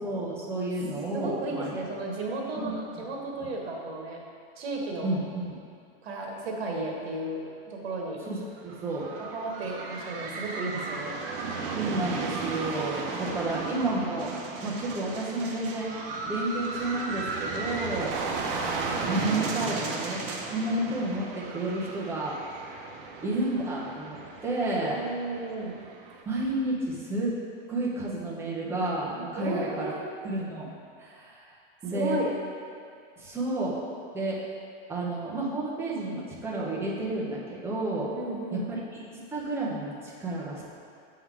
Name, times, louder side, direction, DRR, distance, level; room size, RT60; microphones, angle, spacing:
voice 1, 0.0-1.7 2.6-2.7 5.0-5.6 8.3-9.1 11.7-14.3 14.6-15.9 16.2-18.2 18.6-22.4 23.2-25.0 26.3-27.4 27.7-29.9 30.2-30.7 31.0-31.5 31.8-32.2 33.2-33.8 34.1-34.5 34.9-38.1 38.5-40.6, right 2 dB, 10° right, -6 dB, 0.7 m, -31 dB
voice 2, 1.1-4.2 4.6-5.2 6.0-8.2 9.3-11.2 24.8-25.7 29.4-30.1 31.8-32.4 38.1-38.6, right 2 dB, 85° right, -1 dB, 1.4 m, -34 dB
sound 1, 8.6-26.2, right 4 dB, 65° right, 0.9 m, -35 dB
7.0 x 3.8 x 4.7 m, 2.3 s
supercardioid pair, 165°, 31 cm